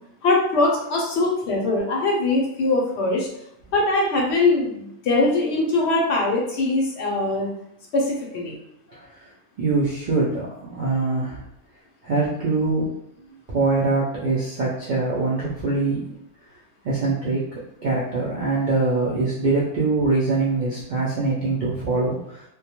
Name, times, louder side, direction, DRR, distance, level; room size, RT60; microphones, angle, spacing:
voice 1, 0.2-3.3 3.7-7.5 7.9-8.6, left 2 dB, 65° left, -2 dB, 0.8 m, -22 dB
voice 2, 8.9-9.3 9.6-11.4 12.0-12.9 13.5-16.0 16.8-17.4 17.8-22.4, right 3 dB, 65° right, -6 dB, 0.4 m, -23 dB
2.2 x 2.1 x 2.8 m, 0.77 s
omnidirectional pair, 1.3 m